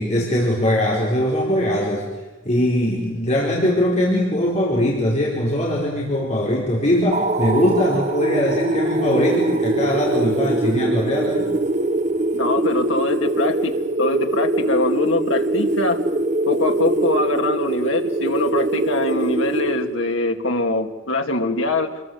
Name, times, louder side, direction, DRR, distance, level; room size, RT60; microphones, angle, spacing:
voice 1, 0.0-2.1 2.4-11.5, left 1 dB, 35° left, -3 dB, 4.8 m, -21 dB
sound 1, 7.1-20.3, right 2 dB, 40° right, 1.0 m, -23 dB
voice 2, 12.3-13.7 14.0-16.0 16.5-22.0, left 2 dB, 85° left, 4 dB, 2.7 m, -23 dB
29.0 x 22.0 x 8.1 m, 1.2 s
head